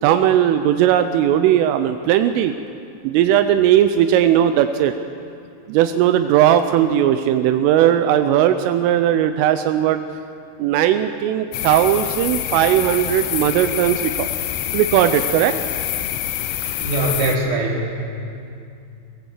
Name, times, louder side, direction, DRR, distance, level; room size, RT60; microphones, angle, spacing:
voice 1, 0.0-2.5 3.0-4.9 5.7-10.0 10.6-14.3 14.7-15.5, right 11 dB, 85° right, 8 dB, 3.3 m, -17 dB
sound 1, 11.5-17.4, left 12 dB, 75° left, 2.9 m, -26 dB
voice 2, 16.8-18.0, right 2 dB, 45° right, -4 dB, 5.1 m, -22 dB
22.5 x 20.0 x 8.1 m, 2.5 s
omnidirectional pair, 5.7 m